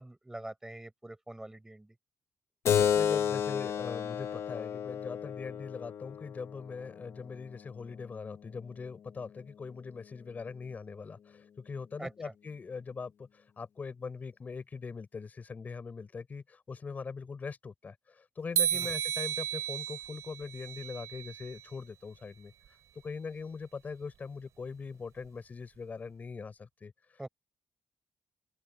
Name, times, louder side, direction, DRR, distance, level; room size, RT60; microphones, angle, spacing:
voice 1, 0.0-2.0 12.0-12.3 18.7-18.9 27.2-27.3, right 1 dB, 10° right, 5.5 m, -44 dB
Keyboard (musical), 2.6-7.8, left 8 dB, 50° left, 1.1 m, -32 dB
voice 2, 2.7-27.3, left 5 dB, 30° left, 5.1 m, -42 dB
sound 1, 18.6-21.6, right 10 dB, 60° right, 4.9 m, -33 dB
open air
cardioid pair, 160°, 6 cm